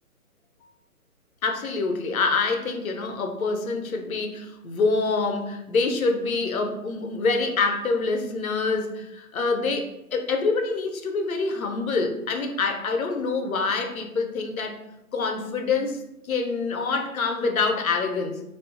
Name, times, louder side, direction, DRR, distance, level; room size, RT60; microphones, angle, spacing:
voice 1, 1.4-14.8 15.1-18.4, left 4 dB, 70° left, 5 dB, 0.5 m, -26 dB
2.5 x 2.4 x 2.4 m, 0.89 s
hypercardioid pair, 175°, 45 cm